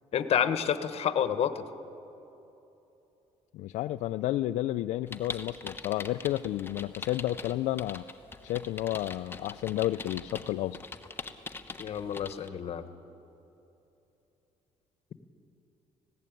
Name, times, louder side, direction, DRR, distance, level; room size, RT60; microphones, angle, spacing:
voice 1, 0.1-1.6 11.8-12.9, left 9 dB, 60° left, 11 dB, 1.1 m, -29 dB
voice 2, 3.5-8.0 8.4-10.8, left 14 dB, 80° left, 10 dB, 0.4 m, -31 dB
sound 1, 5.1-12.5, left 4 dB, 20° left, 1.2 m, -42 dB
19.5 x 16.0 x 9.1 m, 3.0 s
cardioid pair, 100°, 12 cm